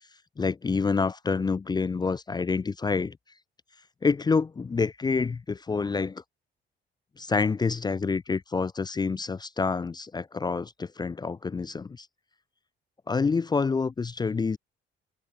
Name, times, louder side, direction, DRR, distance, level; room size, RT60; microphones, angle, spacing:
voice 1, 0.4-3.2 4.0-6.2 7.2-12.1 13.1-14.6, left 4 dB, 20° left, 0.4 m, -27 dB
cardioid pair, 90°, 20 cm